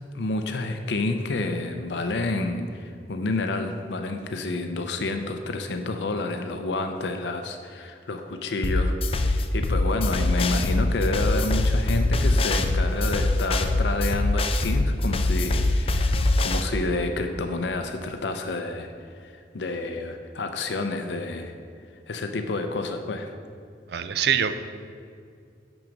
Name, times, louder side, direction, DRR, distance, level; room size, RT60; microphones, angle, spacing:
voice 1, 0.1-16.1 16.4-18.9 19.2-21.5 22.1-23.3, left 2 dB, 80° left, 6 dB, 0.6 m, -29 dB
sound 1, 8.6-16.6, left 2 dB, 35° left, 0.4 m, -23 dB
voice 2, 23.9-24.6, right 8 dB, 65° right, 11 dB, 0.5 m, -24 dB
7.2 x 6.1 x 5.2 m, 2.3 s
head